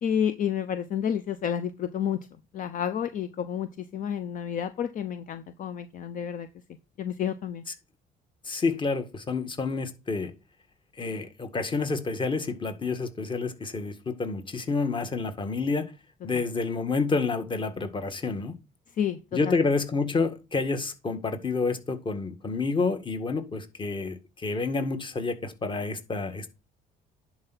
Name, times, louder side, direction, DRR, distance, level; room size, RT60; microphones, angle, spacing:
voice 1, 0.0-2.2 2.5-6.5 7.0-7.6 16.3-16.4 18.9-19.6, left 8 dB, 50° left, 0.8 m, -30 dB
voice 2, 8.4-10.3 11.0-15.9 16.2-18.5 19.3-26.5, left 4 dB, 30° left, 1.7 m, -29 dB
10.5 x 4.6 x 4.1 m
cardioid pair, 110°, 17 cm